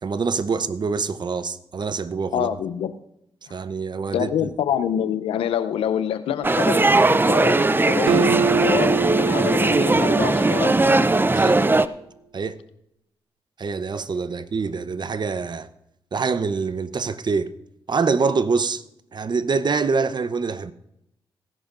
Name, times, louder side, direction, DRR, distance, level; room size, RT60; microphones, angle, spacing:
voice 1, 0.0-2.5 3.5-4.5 11.3-11.6 12.3-12.6 13.6-15.7 16.1-17.5 17.9-18.8 19.1-20.7, right 4 dB, 50° right, 0.8 m, -25 dB
voice 2, 2.3-2.9 3.5-3.6 4.1-10.8, left 9 dB, 85° left, 0.7 m, -26 dB
sound 1, 6.4-11.9, right 2 dB, 20° right, 0.6 m, -19 dB
Acoustic guitar, 8.1-11.5, right 6 dB, 85° right, 0.4 m, -26 dB
19.0 x 11.0 x 2.6 m
supercardioid pair, 40°, 9 cm